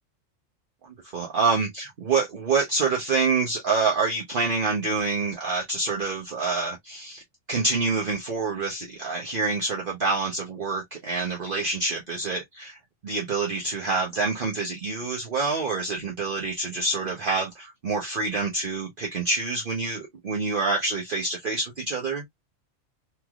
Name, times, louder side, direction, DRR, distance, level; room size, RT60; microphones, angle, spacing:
voice 1, 1.1-7.2 7.5-12.8 13.0-22.2, right 4 dB, 50° right, 0.9 m, -27 dB
3.3 x 2.9 x 2.3 m
omnidirectional pair, 1.3 m